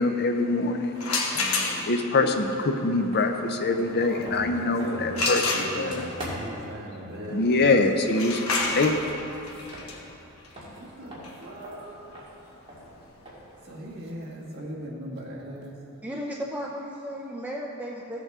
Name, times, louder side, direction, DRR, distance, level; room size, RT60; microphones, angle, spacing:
voice 1, 0.0-6.1 7.3-8.9, left 3 dB, 50° left, 6 dB, 0.6 m, -25 dB
sound 1, 1.0-2.1 5.1-6.2 8.0-13.7, left 3 dB, 75° left, 1.2 m, -30 dB
sound 2, 3.1-3.3 3.7-6.7 8.2-10.3 10.5-13.6, equal, 25° right, 2.2 m, -43 dB
voice 2, 3.8-8.2 10.7-12.3 13.6-15.8, right 1 dB, 50° right, -5 dB, 2.0 m, -39 dB
voice 3, 16.0-18.2, equal, 5° right, -3 dB, 0.5 m, -34 dB
14.5 x 8.0 x 3.6 m, 2.9 s
head